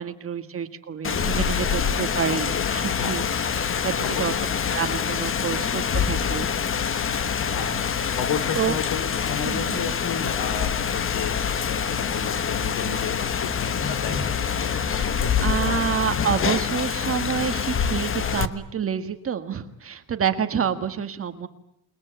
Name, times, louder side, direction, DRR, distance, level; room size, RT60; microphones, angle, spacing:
voice 1, 0.0-3.2 3.8-4.3 4.7-6.5 8.6-8.7 9.4-9.9 14.6-21.5, right 8 dB, 30° right, 9 dB, 1.7 m, -28 dB
Rain, 1.0-18.5, left 7 dB, 30° left, 1.2 m, -25 dB
voice 2, 7.4-7.8 8.2-11.4 11.7-16.1, left 7 dB, 70° left, 13 dB, 3.6 m, -33 dB
29.0 x 21.5 x 8.9 m, 0.72 s
cardioid pair, 165°, 42 cm